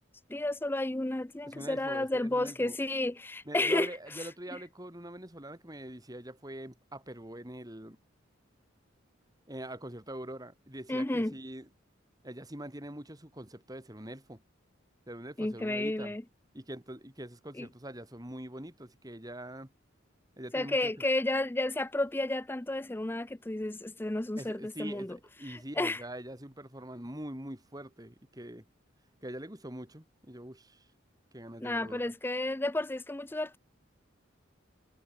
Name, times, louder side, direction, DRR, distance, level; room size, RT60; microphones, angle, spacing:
voice 1, 0.3-3.9 4.2-4.3 10.9-11.3 15.4-16.2 17.5-17.7 20.5-25.2 25.4-26.0 31.6-33.6, left 1 dB, 10° left, 0.5 m, -32 dB
voice 2, 1.4-2.8 3.4-8.0 9.5-11.7 12.2-14.4 15.1-16.1 16.5-19.7 20.4-20.9 24.4-28.6 29.2-30.8 31.3-32.1, right 1 dB, 20° right, 3.0 m, -44 dB
head